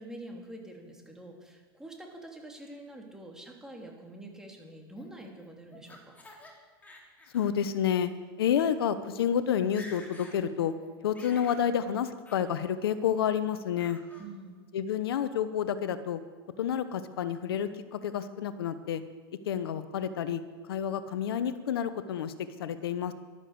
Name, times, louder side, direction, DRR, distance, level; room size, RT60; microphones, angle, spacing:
voice 1, 0.0-6.1 14.2-14.6, right 1 dB, 5° right, 0 dB, 3.0 m, -46 dB
Laughter, 5.0-6.5 6.8-7.5 7.9-8.0 8.7-8.8 9.0-9.3 9.6-10.4 10.7-11.7 12.3-12.5 12.9-13.3 13.8-14.3, left 1 dB, 10° left, 3.4 m, -51 dB
voice 2, 7.3-8.1 8.4-10.7 11.0-14.0 14.7-16.2 16.6-19.0 19.5-20.4 20.7-22.3 22.6-23.1, left 9 dB, 85° left, 12 dB, 1.0 m, -29 dB
12.5 x 12.0 x 7.9 m, 1.4 s
supercardioid pair, 125°, 12 cm